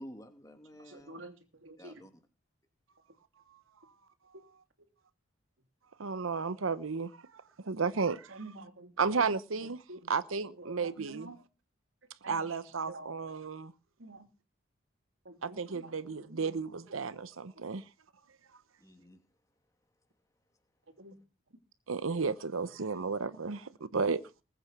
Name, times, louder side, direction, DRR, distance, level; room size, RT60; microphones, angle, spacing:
voice 1, 0.0-1.2 1.8-2.2 18.8-19.2, equal, 15° left, 2.7 m, -50 dB
voice 2, 0.8-2.1 4.3-4.4 4.8-4.9 8.3-9.3 9.6-10.2 10.5-11.4 12.2-13.3 14.0-14.3 15.2-16.6 17.5-17.7 20.9-21.2 21.5-21.6 23.3-23.5 23.8-23.9, right 2 dB, 75° right, 3.1 m, -50 dB
voice 3, 6.0-7.1 7.6-8.4 9.0-9.8 10.1-11.3 12.3-13.7 15.4-17.8 21.9-24.2, right 5 dB, 90° right, 0.8 m, -33 dB
20.5 x 8.8 x 5.9 m
head